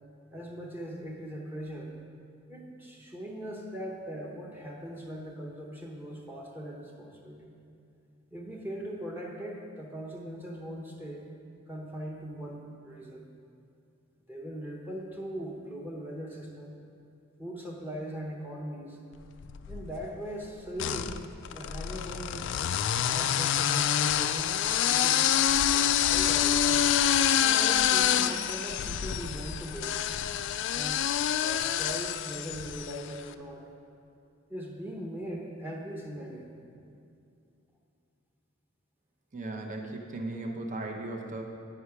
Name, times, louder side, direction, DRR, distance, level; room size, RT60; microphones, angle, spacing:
voice 1, 0.3-2.0 2.5-7.6 8.3-11.3 11.7-13.3 14.3-16.8 17.4-19.0 19.7-21.1 21.5-22.6 22.9-25.3 25.7-26.9 27.4-30.0 30.7-31.1 31.4-33.7 34.5-36.5, equal, 10° right, -2 dB, 0.9 m, -40 dB
sound 1, 19.4-20.1 20.8-33.1, left 10 dB, 65° left, 0.3 m, -27 dB
voice 2, 39.3-41.4, right 2 dB, 40° right, 1 dB, 0.9 m, -36 dB
10.0 x 5.5 x 4.8 m, 2.5 s
head